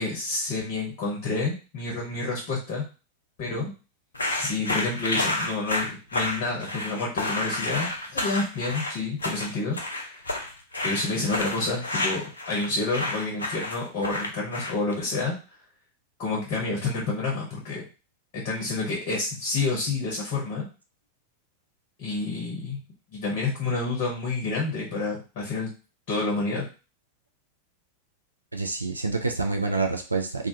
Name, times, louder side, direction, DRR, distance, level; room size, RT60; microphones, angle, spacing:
voice 1, 0.0-2.8 3.4-3.7 4.4-9.8 10.0-10.2 10.8-15.3 16.2-17.8 18.3-20.7 22.0-22.8 23.1-25.7 26.1-26.7, left 3 dB, 45° left, -2 dB, 0.8 m, -29 dB
sound 1, 4.1-14.9, left 2 dB, 75° left, 0.5 m, -30 dB
voice 2, 28.5-30.5, right 3 dB, 80° right, 3 dB, 0.3 m, -27 dB
2.3 x 2.2 x 2.7 m, 0.33 s
figure-of-eight pair, 90°, 0 cm